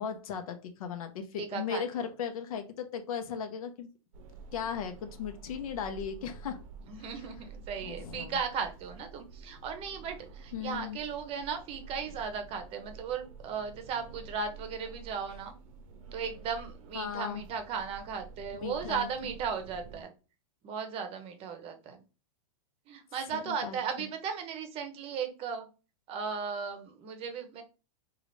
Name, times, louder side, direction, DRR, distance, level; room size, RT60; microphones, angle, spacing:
voice 1, 0.0-3.9 4.5-6.7 7.0-7.1 7.8-8.4 10.5-11.0 16.9-17.5 18.5-19.1 23.3-24.1, left 7 dB, 75° left, 6 dB, 0.8 m, -37 dB
voice 2, 1.4-1.8 6.9-15.5 16.1-20.1 20.6-22.0 22.9-25.7 26.1-27.6, right 6 dB, 30° right, 7 dB, 0.7 m, -36 dB
sound 1, 4.1-20.0, right 4 dB, 65° right, 0.6 m, -49 dB
3.8 x 2.4 x 3.1 m, 0.33 s
hypercardioid pair, 130°, 19 cm